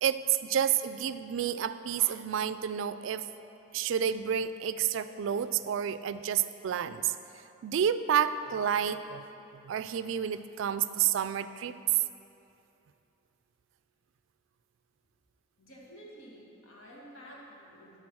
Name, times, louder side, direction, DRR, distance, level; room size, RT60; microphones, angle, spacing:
voice 1, 0.0-3.2 3.7-7.1 7.6-9.2 9.6-11.7, right 9 dB, 65° right, 12 dB, 0.3 m, -29 dB
voice 2, 15.6-18.0, equal, 85° left, -4 dB, 1.7 m, -50 dB
10.5 x 3.8 x 6.2 m, 2.8 s
head